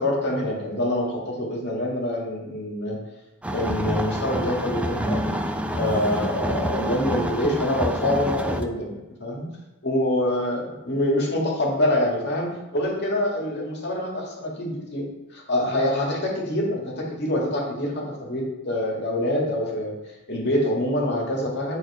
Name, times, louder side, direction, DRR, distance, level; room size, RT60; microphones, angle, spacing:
voice 1, 0.0-3.0 3.5-5.2 5.7-9.4 9.8-15.1 15.3-20.0 20.3-21.8, left 1 dB, 50° left, -1 dB, 2.1 m, -25 dB
sound 1, 3.4-8.6, equal, 5° right, 0.4 m, -27 dB
9.2 x 4.3 x 4.9 m, 1.1 s
head